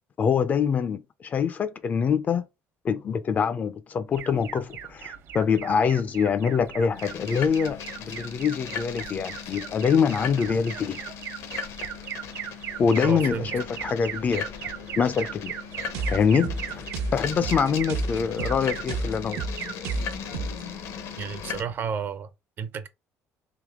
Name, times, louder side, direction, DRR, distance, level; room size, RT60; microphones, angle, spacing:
voice 1, 0.2-2.4 2.8-11.0 12.8-14.5 15.0-15.5 16.1-16.8 17.1-19.4, left 6 dB, 30° left, 0.4 m, -25 dB
Alarm, 4.1-21.8, right 9 dB, 60° right, 0.9 m, -39 dB
sound 1, 7.0-21.6, left 7 dB, 65° left, 0.7 m, -38 dB
voice 2, 13.0-13.5 21.2-22.3 22.6-22.9, right 6 dB, 40° right, 0.5 m, -31 dB
sound 2, 15.9-20.7, right 2 dB, 85° right, 0.8 m, -32 dB
3.5 x 3.0 x 3.5 m
cardioid pair, 150°, 5 cm